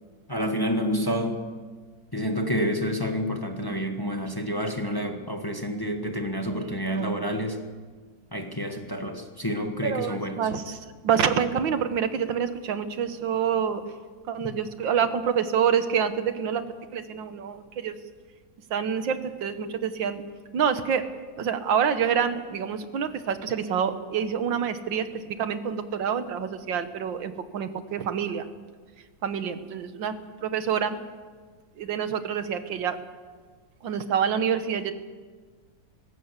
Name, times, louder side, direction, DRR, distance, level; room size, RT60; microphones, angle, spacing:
voice 1, 0.3-1.4 2.1-7.6 8.3-10.4, equal, 15° left, 4 dB, 1.4 m, -28 dB
voice 2, 6.5-7.1 9.8-13.8 14.3-16.6 16.9-18.0 18.7-20.2 20.5-21.0 21.4-25.1 25.4-28.5 29.2-30.1 30.4-31.0 31.8-33.0 33.8-34.9, right 7 dB, 85° right, 10 dB, 1.9 m, -27 dB
20.0 x 16.5 x 8.1 m, 1.5 s
omnidirectional pair, 2.0 m